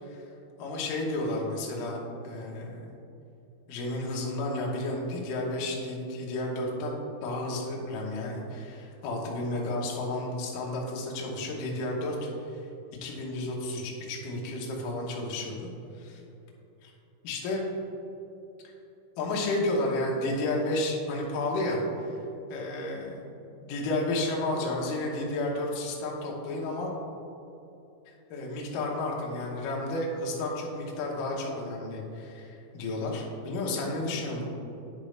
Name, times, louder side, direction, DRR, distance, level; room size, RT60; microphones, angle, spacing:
voice 1, 0.6-2.0 2.2-2.9 3.7-12.3 13.0-15.7 16.0-16.2 16.8-16.9 17.2-17.6 19.2-21.8 22.5-23.2 23.6-26.9 28.1-34.5, left 2 dB, 90° left, -2 dB, 1.8 m, -32 dB
9.8 x 5.1 x 3.2 m, 2.8 s
omnidirectional pair, 5.5 m